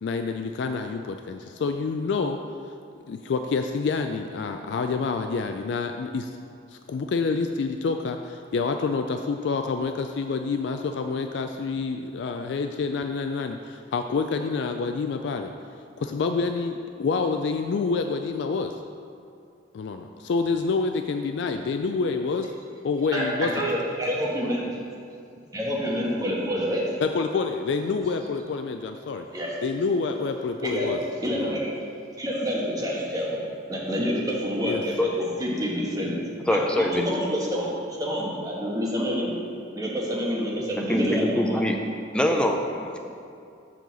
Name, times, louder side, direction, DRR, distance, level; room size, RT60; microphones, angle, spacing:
voice 1, 0.0-2.4 3.1-6.3 6.7-15.5 16.0-18.7 19.7-22.5 22.8-23.7 27.0-29.3 29.6-31.0 31.3-31.6 34.6-34.8, left 4 dB, 65° left, 6 dB, 0.3 m, -27 dB
voice 2, 23.1-24.7 25.5-26.8 29.3-29.5 30.6-30.9 31.2-31.7 32.2-33.3 33.7-34.9 35.2-36.1 36.9-39.3 39.7-41.6, equal, 20° right, -4 dB, 1.3 m, -27 dB
voice 3, 36.5-37.1 40.8-41.8 42.1-43.0, left 1 dB, 5° left, 1 dB, 0.5 m, -24 dB
7.5 x 3.9 x 6.7 m, 2.4 s
head